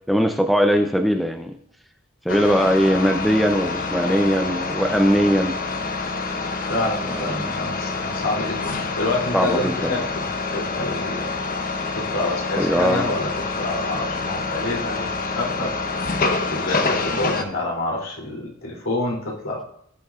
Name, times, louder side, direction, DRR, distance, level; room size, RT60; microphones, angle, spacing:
voice 1, 0.1-1.5 2.3-5.5 7.1-7.4 9.3-9.9 12.6-13.1, equal, ahead, 5 dB, 0.6 m, -20 dB
sound 1, 2.3-17.4, left 3 dB, 45° left, 1.0 m, -27 dB
voice 2, 6.7-11.3 11.9-15.7 16.5-19.6, left 2 dB, 75° left, -2 dB, 3.0 m, -27 dB
18.0 x 7.1 x 2.5 m, 0.71 s
head